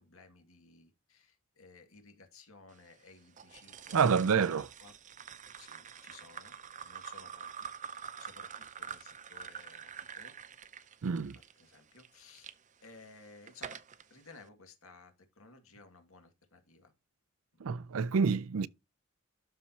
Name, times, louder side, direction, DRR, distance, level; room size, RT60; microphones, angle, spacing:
voice 1, 0.0-4.3 4.6-4.9 5.6-10.4 11.6-12.6 12.8-13.8 14.1-16.9 17.5-17.6, left 4 dB, 80° left, 2.1 m, -57 dB
sound 1, 3.4-12.5 13.1-14.0, right 7 dB, 35° right, 0.6 m, -46 dB
voice 2, 3.9-4.7 11.0-11.4 17.6-18.7, right 6 dB, 80° right, 0.5 m, -28 dB
12.5 x 4.4 x 2.9 m
head